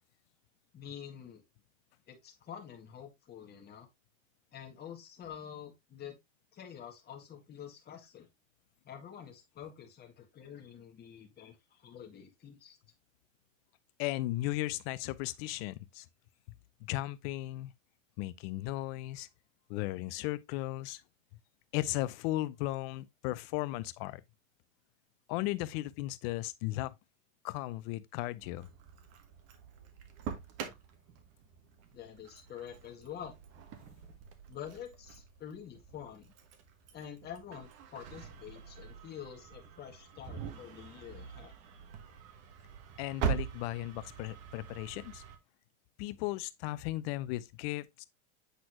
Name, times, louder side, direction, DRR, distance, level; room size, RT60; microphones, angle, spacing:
voice 1, 0.7-1.4 2.1-3.9 4.5-6.2 6.5-8.3 8.8-12.8 31.9-33.3 34.5-36.3 36.9-41.5, left 9 dB, 25° left, 1.7 m, -47 dB
voice 2, 14.0-16.0 16.8-17.7 18.2-19.3 19.7-21.0 21.7-24.2 25.3-26.9 27.4-28.7 43.0-45.2 46.0-48.1, left 17 dB, 55° left, 0.6 m, -36 dB
Engine starting, 28.4-45.4, right 7 dB, 45° right, 1.3 m, -43 dB
8.0 x 4.2 x 2.9 m
supercardioid pair, 135°, 37 cm